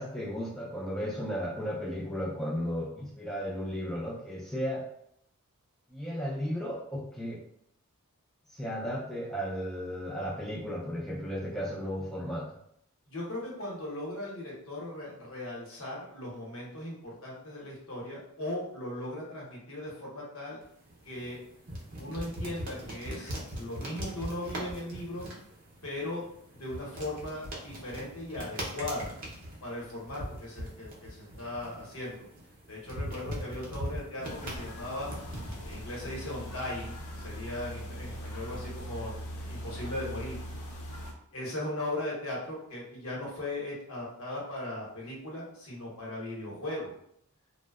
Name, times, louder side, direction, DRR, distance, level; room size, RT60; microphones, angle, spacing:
voice 1, 0.0-4.8 5.9-7.4 8.5-12.5, equal, ahead, -6 dB, 0.3 m, -34 dB
voice 2, 13.1-20.6 21.0-21.4 22.0-25.3 25.8-26.2 26.5-29.1 29.6-32.3 32.7-35.1 35.6-40.4 41.3-46.9, left 1 dB, 65° left, -4 dB, 0.9 m, -38 dB
sound 1, 20.6-38.8, equal, 40° right, 0.6 m, -42 dB
sound 2, 34.2-41.1, equal, 80° left, 0.5 m, -41 dB
2.6 x 2.0 x 2.3 m, 0.70 s
head